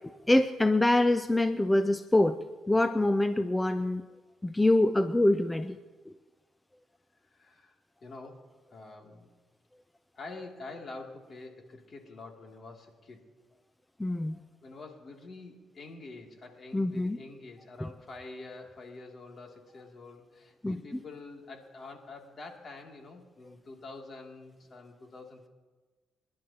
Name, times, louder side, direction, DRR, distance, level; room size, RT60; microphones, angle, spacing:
voice 1, 0.3-2.4 2.7-4.0 4.4-5.8 6.1-6.2 14.0-14.4 16.7-17.2 17.8-17.9 20.6-20.8, left 1 dB, 10° left, 10 dB, 0.5 m, -25 dB
voice 2, 7.3-9.3 10.1-13.2 14.6-25.5, left 3 dB, 45° left, 1 dB, 2.6 m, -47 dB
29.0 x 11.5 x 2.9 m, 1.3 s
cardioid pair, 90°, 0 cm